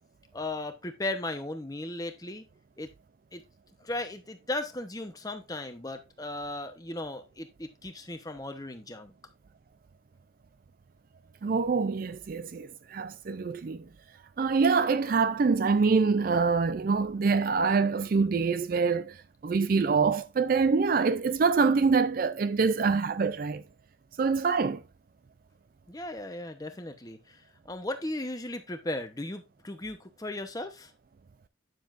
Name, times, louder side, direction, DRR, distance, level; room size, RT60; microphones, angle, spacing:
voice 1, 0.3-2.4 2.8-2.9 3.3-3.4 3.8-9.1 25.9-27.4 27.6-30.9, left 1 dB, 20° left, 0.9 m, -36 dB
voice 2, 11.4-13.9 14.4-19.2 19.4-23.6 24.2-24.8, right 4 dB, 45° right, 0.4 m, -25 dB
9.3 x 7.0 x 2.5 m
head